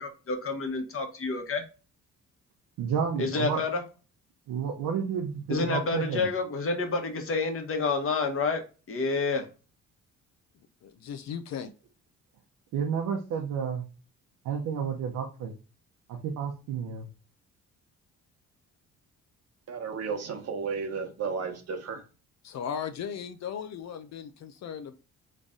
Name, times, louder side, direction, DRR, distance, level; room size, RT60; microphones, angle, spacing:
voice 1, 0.0-1.6 3.2-3.8 5.5-8.6 8.9-9.5, left 4 dB, 45° left, 4 dB, 1.2 m, -29 dB
voice 2, 2.8-3.6 4.5-6.3 12.7-13.8 14.4-15.5 16.1-17.1, right 7 dB, 80° right, 1 dB, 0.8 m, -31 dB
voice 3, 10.8-11.7 22.4-24.9, left 7 dB, 60° left, 9 dB, 0.6 m, -37 dB
voice 4, 19.7-22.0, right 5 dB, 55° right, 4 dB, 1.2 m, -33 dB
3.9 x 3.3 x 3.6 m, 0.33 s
cardioid pair, 90°, 30 cm